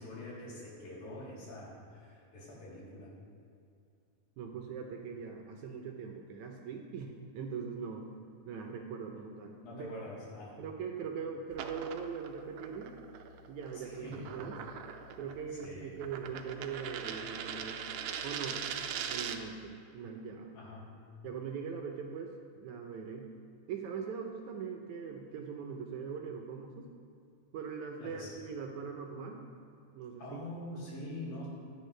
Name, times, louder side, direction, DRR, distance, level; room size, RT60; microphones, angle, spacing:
voice 1, 0.0-3.1 9.6-10.6 13.7-14.3 15.2-16.0 20.5-20.9 28.0-28.3 30.2-31.5, left 1 dB, 90° left, -7 dB, 5.2 m, -45 dB
voice 2, 4.4-8.1 8.5-9.9 10.6-12.9 13.5-14.6 15.2-17.8 18.2-18.6 19.1-20.5 21.2-23.3 23.7-26.9 27.5-29.4 29.9-30.5 30.7-31.0, right 6 dB, 70° right, 2 dB, 1.9 m, -41 dB
sound 1, 11.5-19.6, right 7 dB, 85° right, 1.6 m, -41 dB
16.0 x 10.5 x 3.3 m, 2.4 s
omnidirectional pair, 4.0 m